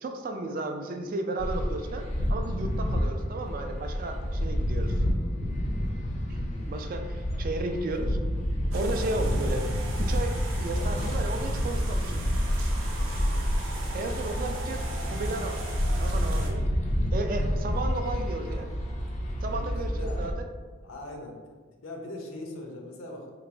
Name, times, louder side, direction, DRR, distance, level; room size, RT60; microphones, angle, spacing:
voice 1, 0.0-5.0 6.3-6.4 6.7-8.2 8.7-9.6 10.0-12.2 13.9-14.8 15.1-15.7 16.0-16.7 17.1-18.7 19.4-20.5, right 2 dB, 45° right, 5 dB, 0.3 m, -34 dB
sound 1, 1.4-20.3, equal, 35° left, 0.3 m, -29 dB
voice 2, 6.2-6.9 19.5-19.7 20.0-20.2 20.8-21.4 21.8-23.3, left 1 dB, 90° left, 1 dB, 0.6 m, -41 dB
sound 2, 8.7-16.5, right 2 dB, 85° right, 0.6 m, -37 dB
3.6 x 3.0 x 2.6 m, 1.5 s
head